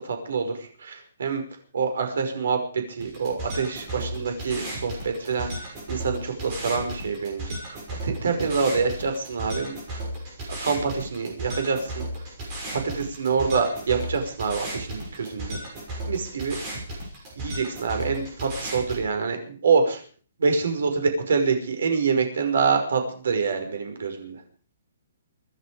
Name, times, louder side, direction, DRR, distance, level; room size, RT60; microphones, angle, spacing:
voice 1, 0.1-0.5 0.8-1.4 1.7-5.5 5.9-7.5 8.0-9.7 10.6-12.0 12.7-15.6 16.1-16.5 17.4-18.2 18.6-20.0 20.4-24.4, right 5 dB, 65° right, 6 dB, 5.6 m, -26 dB
sound 1, 3.0-19.0, right 1 dB, 20° right, 6.4 m, -35 dB
25.5 x 11.0 x 5.1 m, 0.43 s
hypercardioid pair, 180°, 0 cm